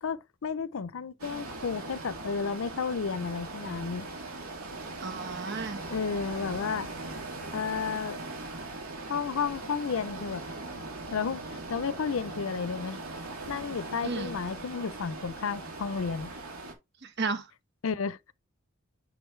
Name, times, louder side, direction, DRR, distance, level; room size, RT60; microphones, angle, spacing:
voice 1, 0.0-4.1 5.9-6.9 7.5-8.2 9.1-10.4 11.1-13.0 13.5-16.3 17.8-18.2, left 5 dB, 70° left, 0.5 m, -32 dB
sound 1, 1.2-16.7, right 2 dB, 85° right, 2.5 m, -40 dB
voice 2, 5.0-5.8 14.0-14.3 17.0-17.5, right 4 dB, 50° right, 1.3 m, -33 dB
7.9 x 5.1 x 3.2 m
head